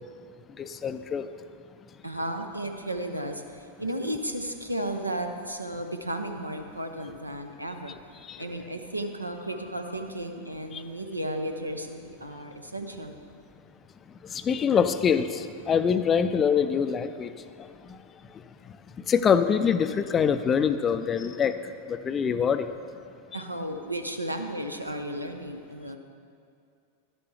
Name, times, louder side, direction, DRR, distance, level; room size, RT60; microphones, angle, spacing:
voice 1, 0.6-1.3 8.3-8.4 10.7-10.8 14.3-17.3 19.1-22.7, left 7 dB, 25° left, 11 dB, 0.4 m, -24 dB
voice 2, 2.0-7.9 8.4-13.2 23.3-26.0, right 1 dB, 85° right, 6 dB, 0.7 m, -34 dB
11.5 x 10.0 x 3.3 m, 2.4 s
figure-of-eight pair, 90°, 0 cm